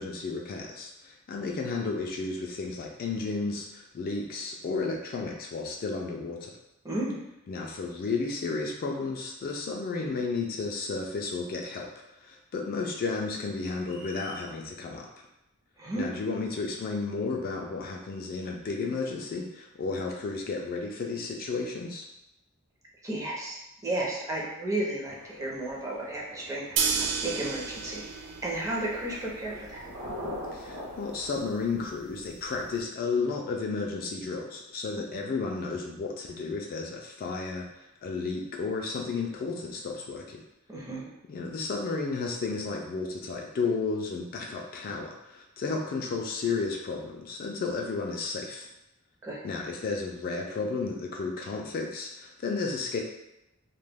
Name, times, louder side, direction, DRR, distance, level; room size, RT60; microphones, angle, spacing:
voice 1, 0.0-6.5 7.5-11.9 12.2-15.1 15.9-22.0 30.5-40.4 41.3-48.7 49.4-53.0, left 4 dB, 40° left, 1 dB, 0.3 m, -33 dB
voice 2, 6.8-7.2 15.8-16.1 23.0-29.9 35.1-35.2 40.7-41.1 49.2-49.4, right 1 dB, 15° right, -5 dB, 0.5 m, -33 dB
sound 1, 13.8-14.5, left 2 dB, 75° left, 0.7 m, -47 dB
sound 2, 25.0-31.3, left 1 dB, 60° right, 0.9 m, -43 dB
sound 3, 26.8-32.8, right 5 dB, 80° right, 0.4 m, -34 dB
2.2 x 2.2 x 3.3 m, 0.89 s
head